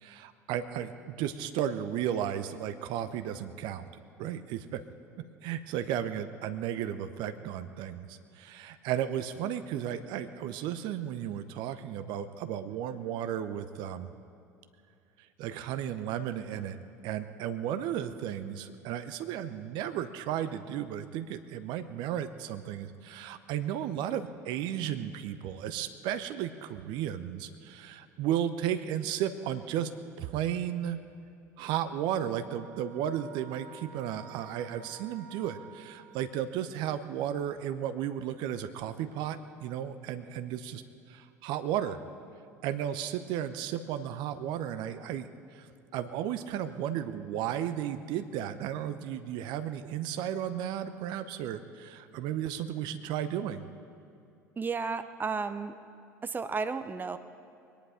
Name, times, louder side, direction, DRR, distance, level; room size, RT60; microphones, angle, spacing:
voice 1, 0.0-4.8 5.4-14.1 15.4-16.8 17.0-29.9 30.2-31.0 31.6-40.8 41.1-42.0 42.6-45.7 45.9-53.7, right 10 dB, 60° right, 10 dB, 0.8 m, -34 dB
sound 1, 32.4-36.8, right 6 dB, 80° right, 1.5 m, -51 dB
voice 2, 54.6-55.8 56.2-57.2, right 4 dB, 20° right, 11 dB, 0.7 m, -33 dB
22.0 x 10.5 x 5.1 m, 2.5 s
hypercardioid pair, 65°, 9 cm